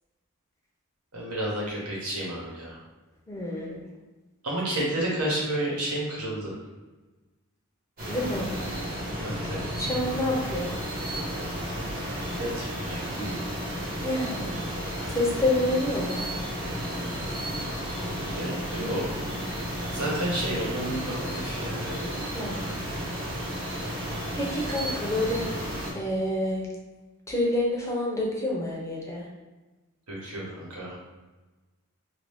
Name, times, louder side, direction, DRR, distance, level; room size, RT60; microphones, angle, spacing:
voice 1, 1.1-2.8 4.4-6.5 9.2-9.7 12.4-13.4 18.2-19.1 19.9-22.1 30.1-31.0, right 1 dB, 80° right, -5 dB, 1.2 m, -31 dB
voice 2, 3.3-3.8 8.1-8.5 9.8-10.7 14.0-14.7 15.1-16.2 22.3-22.7 24.3-25.7 25.9-26.7 27.3-29.3, left 1 dB, 15° left, -3 dB, 0.5 m, -28 dB
sound 1, 8.0-25.9, equal, 40° right, 1.0 m, -33 dB
2.8 x 2.6 x 3.4 m, 1.2 s
head